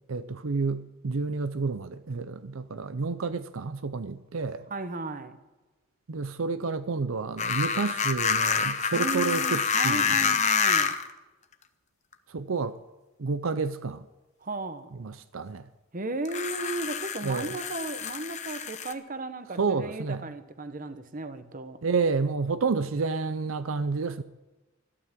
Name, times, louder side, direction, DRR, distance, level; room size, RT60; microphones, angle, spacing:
voice 1, 0.1-4.7 6.1-10.3 12.3-12.8 13.2-14.1 15.0-15.6 17.2-17.5 19.6-20.2 21.8-24.2, right 4 dB, 85° right, 0.7 m, -30 dB
voice 2, 4.7-5.4 8.9-10.9 14.4-14.9 15.9-21.8, right 3 dB, 40° right, 1.2 m, -35 dB
sound 1, 7.4-11.1 12.1-12.2 16.3-18.9, left 6 dB, 35° left, 1.0 m, -27 dB
14.0 x 12.5 x 7.5 m
head